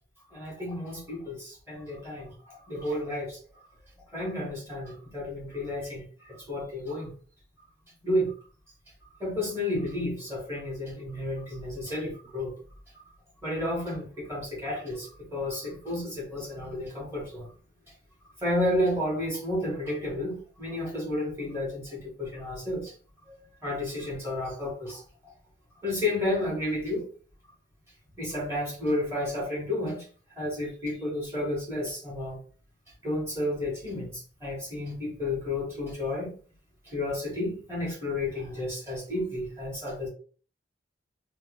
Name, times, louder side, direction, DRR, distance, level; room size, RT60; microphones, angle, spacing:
voice 1, 0.3-3.4 4.1-7.1 8.0-8.3 9.2-12.5 13.4-17.5 18.4-22.9 23.3-25.3 25.8-27.1 28.2-32.4 33.0-36.3 36.8-40.1, left 1 dB, 15° right, -5 dB, 1.3 m, -32 dB
3.2 x 2.2 x 3.0 m, 0.41 s
head